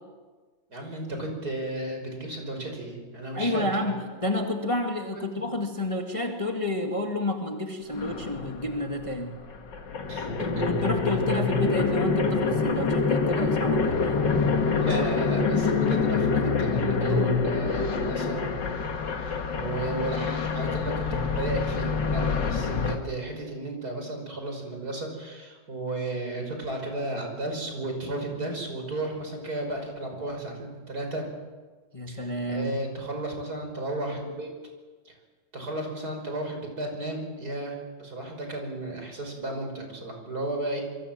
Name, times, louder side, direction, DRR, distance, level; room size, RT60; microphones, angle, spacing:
voice 1, 0.7-3.9 10.1-10.7 14.8-18.6 19.2-31.2 32.1-34.5 35.1-35.2 35.5-40.8, right 1 dB, 50° right, 3 dB, 6.1 m, -34 dB
voice 2, 3.4-9.3 10.6-14.2 31.9-32.7, left 1 dB, 15° left, 2 dB, 2.0 m, -30 dB
sound 1, 7.9-9.1 9.5-23.0, left 4 dB, 65° left, 2.4 m, -26 dB
26.5 x 23.5 x 7.6 m, 1.4 s
omnidirectional pair, 2.1 m